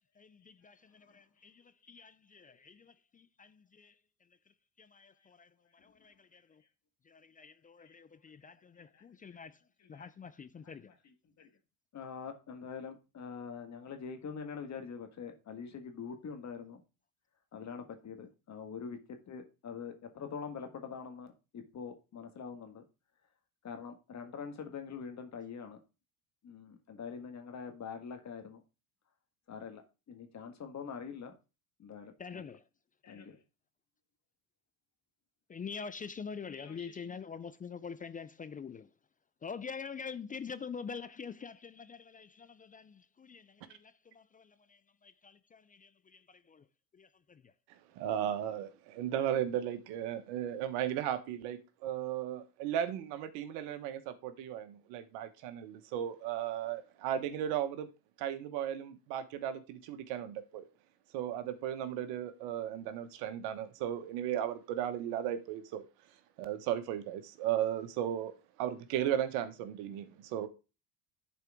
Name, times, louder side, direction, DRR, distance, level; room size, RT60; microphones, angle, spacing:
voice 1, 0.2-3.9 4.8-6.6 7.0-9.6 9.9-10.9 32.2-32.6 35.5-38.9 39.4-46.7 46.9-47.5, left 6 dB, 20° left, 0.5 m, -46 dB
voice 2, 11.9-16.8 17.5-22.8 23.6-25.8 26.4-28.6 29.5-29.8 30.1-31.3 31.8-32.4 33.0-33.4 36.4-37.2, left 6 dB, 40° left, 1.6 m, -44 dB
voice 3, 47.9-57.9 58.2-60.6 61.1-65.9 66.4-70.5, right 10 dB, 65° right, 1.2 m, -35 dB
11.0 x 4.4 x 3.6 m
hypercardioid pair, 75°, 44 cm